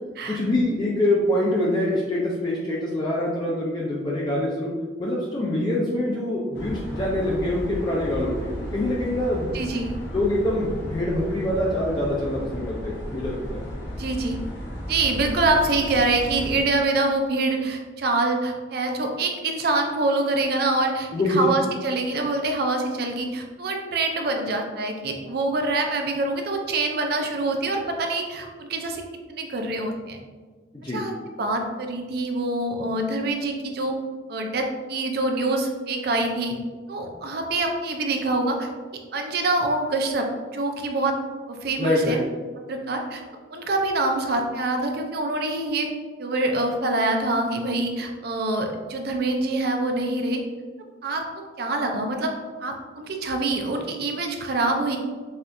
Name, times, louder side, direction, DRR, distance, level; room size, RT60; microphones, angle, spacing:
voice 1, 0.3-4.7 5.0-9.6 10.1-13.6 21.1-21.5 30.7-31.0 41.8-42.2, left 1 dB, 20° left, -5 dB, 0.4 m, -25 dB
sound 1, 6.5-16.6, equal, 65° left, 0.7 m, -34 dB
voice 2, 9.5-9.9 14.0-14.4 14.9-29.0 29.3-30.2 30.9-31.1 31.4-34.0 34.3-36.6 36.9-38.7 39.1-40.3 40.5-41.1 41.5-42.2 42.7-43.2 43.5-45.9 46.2-50.4 51.0-52.3 52.6-55.0, right 2 dB, 55° right, 3 dB, 0.4 m, -25 dB
4.2 x 2.4 x 2.5 m, 1.4 s
head